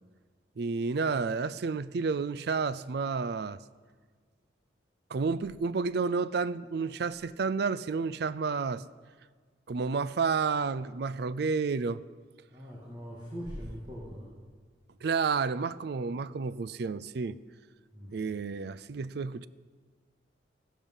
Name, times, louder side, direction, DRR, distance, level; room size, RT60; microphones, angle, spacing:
voice 1, 0.6-3.6 5.1-8.8 9.7-12.0 15.0-17.4 18.1-19.5, right 5 dB, 55° right, 0.4 m, -30 dB
voice 2, 12.5-14.3 17.9-18.4, equal, 25° right, 2.2 m, -41 dB
15.5 x 12.0 x 5.5 m
head